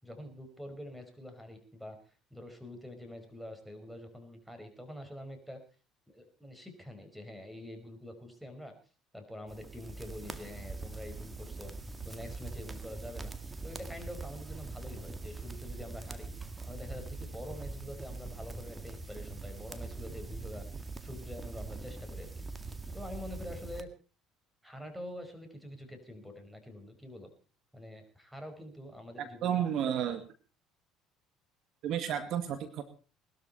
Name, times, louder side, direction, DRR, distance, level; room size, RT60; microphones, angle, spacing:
voice 1, 0.0-2.0 2.3-5.6 6.1-8.8 9.1-13.3 13.6-20.7 21.0-23.9 24.6-27.3 27.7-29.9, left 1 dB, ahead, 7 dB, 5.1 m, -46 dB
sound 1, 9.5-23.8, right 3 dB, 20° right, 1.8 m, -43 dB
voice 2, 29.2-30.2 31.8-32.8, right 9 dB, 60° right, 9 dB, 2.0 m, -32 dB
20.0 x 13.0 x 4.3 m, 0.37 s
supercardioid pair, 85°, 0 cm